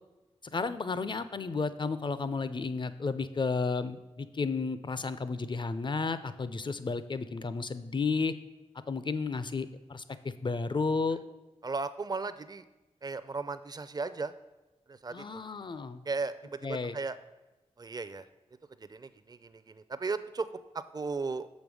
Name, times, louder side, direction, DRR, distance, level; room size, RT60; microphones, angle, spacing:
voice 1, 0.4-8.3 8.9-11.2 15.1-16.0 16.6-17.0, left 4 dB, 45° left, 13 dB, 0.5 m, -32 dB
voice 2, 11.6-12.6 13.0-14.3 14.9-15.4 16.1-17.2 17.8-18.3 18.8-20.5 20.7-21.5, right 4 dB, 35° right, 13 dB, 0.5 m, -36 dB
6.7 x 5.2 x 6.2 m, 1.1 s
cardioid pair, 55°, 12 cm